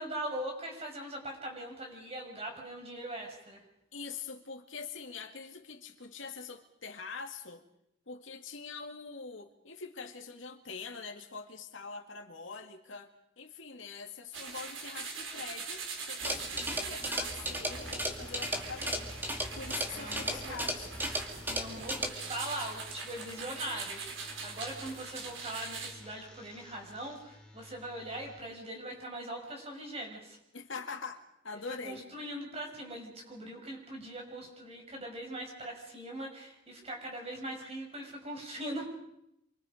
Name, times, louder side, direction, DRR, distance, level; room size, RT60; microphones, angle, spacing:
voice 1, 0.0-3.6 19.9-20.5 21.5-30.4 31.8-38.9, right 1 dB, 30° right, 1 dB, 5.9 m, -41 dB
voice 2, 3.9-7.6 8.1-19.2 19.5-20.9 30.5-32.1, left 4 dB, 80° left, 4 dB, 2.4 m, -44 dB
sound 1, 14.3-25.9, right 5 dB, 80° right, 4.6 m, -42 dB
sound 2, 16.2-22.1, equal, 10° right, 2.6 m, -36 dB
sound 3, 17.7-28.4, left 1 dB, 5° left, 5.0 m, -52 dB
29.0 x 25.0 x 5.2 m, 0.83 s
head